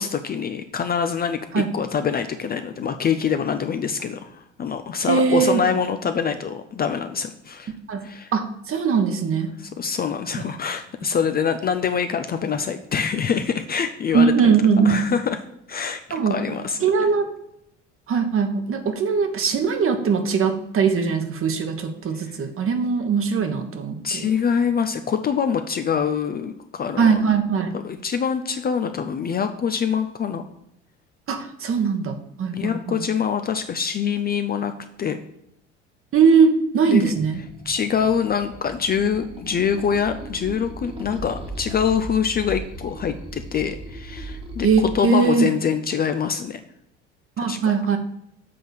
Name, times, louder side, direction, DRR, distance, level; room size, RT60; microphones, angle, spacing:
voice 1, 0.0-7.7 8.0-8.3 9.8-14.5 14.8-15.4 15.7-16.8 24.0-27.3 27.8-30.4 32.5-34.7 35.0-35.2 36.9-37.1 37.7-46.6 47.4-47.6, left 7 dB, 25° left, 8 dB, 0.5 m, -25 dB
voice 2, 5.1-5.6 7.9-9.5 14.1-15.0 16.1-16.4 16.8-17.3 18.1-24.3 27.0-27.7 31.3-33.1 36.1-37.4 44.6-45.5 47.4-48.0, right 5 dB, 35° right, 6 dB, 1.2 m, -20 dB
sound 1, 37.0-44.9, right 2 dB, 15° right, 1.5 m, -37 dB
7.5 x 3.9 x 6.3 m, 0.77 s
hypercardioid pair, 65°, 36 cm